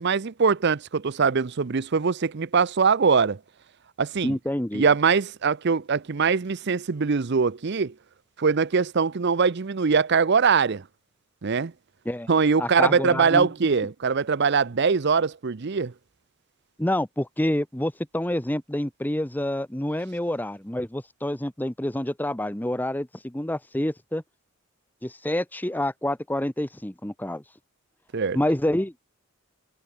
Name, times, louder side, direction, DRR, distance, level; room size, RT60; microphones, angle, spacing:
voice 1, 0.0-3.4 4.0-4.4 4.7-7.9 8.4-10.8 11.4-11.7 12.3-15.9 28.1-28.4, right 5 dB, 50° right, 0.6 m, -22 dB
voice 2, 4.2-4.8 12.0-12.3 12.6-13.5 16.8-24.2 25.0-27.4 28.3-28.9, left 1 dB, 10° left, 0.8 m, -27 dB
head